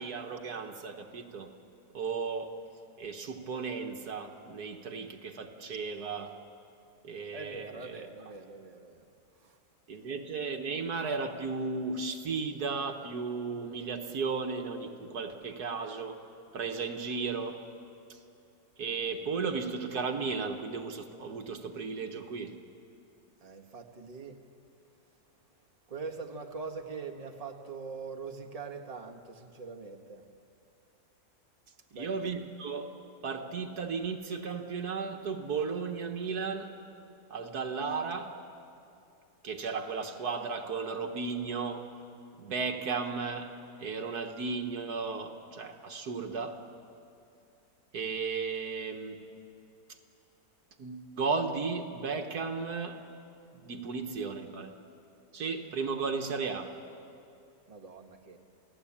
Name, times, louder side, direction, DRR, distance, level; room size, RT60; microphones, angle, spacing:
voice 1, 0.0-1.5 1.9-2.6 3.0-6.4 7.0-8.1 9.9-16.2 16.5-17.6 18.1-18.2 18.8-22.5 32.0-32.9 33.2-36.7 37.3-38.4 39.4-41.8 42.4-43.5 43.8-46.6 47.9-49.2 50.8-53.0 53.5-54.8 55.3-56.7, right 4 dB, 70° right, 4 dB, 1.9 m, -35 dB
voice 2, 7.3-9.0 9.4-9.6 23.4-24.4 25.9-30.2 31.9-32.1 57.7-58.4, right 4 dB, 25° right, 3 dB, 1.6 m, -42 dB
29.0 x 17.0 x 8.7 m, 2.6 s
omnidirectional pair, 1.7 m